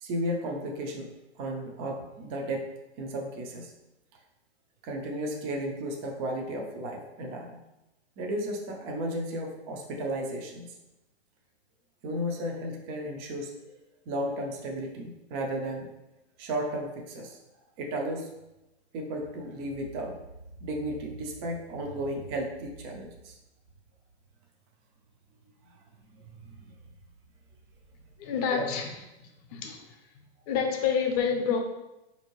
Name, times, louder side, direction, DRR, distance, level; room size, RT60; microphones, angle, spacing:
voice 1, 0.0-2.6 3.0-3.7 4.8-7.6 8.2-10.8 12.0-13.5 14.1-15.9 16.4-17.4 17.8-18.3 18.9-20.1 20.6-23.4 25.7-25.8 26.2-26.7 28.5-28.6, right 1 dB, 25° right, 1 dB, 0.4 m, -34 dB
voice 2, 28.2-28.9 29.5-30.0 30.5-31.6, left 6 dB, 35° left, 3 dB, 0.6 m, -28 dB
4.2 x 2.7 x 3.0 m, 0.97 s
hypercardioid pair, 135°, 34 cm